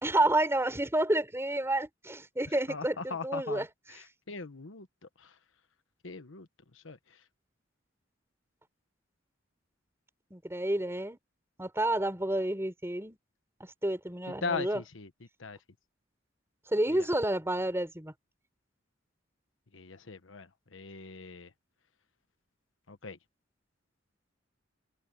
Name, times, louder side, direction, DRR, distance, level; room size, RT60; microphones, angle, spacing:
voice 1, 0.0-3.7 10.3-11.2 11.6-13.2 13.6-14.8 16.7-18.1, right 1 dB, 15° right, 4.5 m, -30 dB
voice 2, 2.7-3.6 4.3-4.9 5.2-5.3 6.0-6.5 6.7-7.0 14.4-15.1 15.4-15.6 19.7-21.5 22.9-23.2, left 4 dB, 85° left, 1.2 m, -39 dB
head